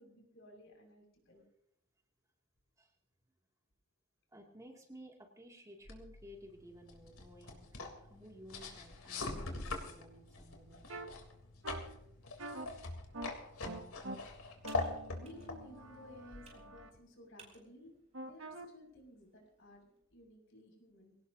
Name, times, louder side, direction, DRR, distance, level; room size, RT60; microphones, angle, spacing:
voice 1, 0.0-1.4 15.1-17.9 18.2-21.2, left 1 dB, 65° left, 2 dB, 6.2 m, -56 dB
voice 2, 4.3-7.7 8.0-11.2 12.8-13.9, equal, 15° right, 0 dB, 2.4 m, -56 dB
sound 1, 5.8-17.0, left 3 dB, 85° left, 3.3 m, -44 dB
sound 2, 10.9-11.1 11.6-11.8 12.4-12.7 13.1-13.3 13.6-14.2 14.6-16.9 18.1-18.7, right 2 dB, 65° right, 1.7 m, -45 dB
Computer keyboard, 13.2-20.0, right 4 dB, 30° right, 5.2 m, -64 dB
23.5 x 18.5 x 2.8 m, 0.74 s
head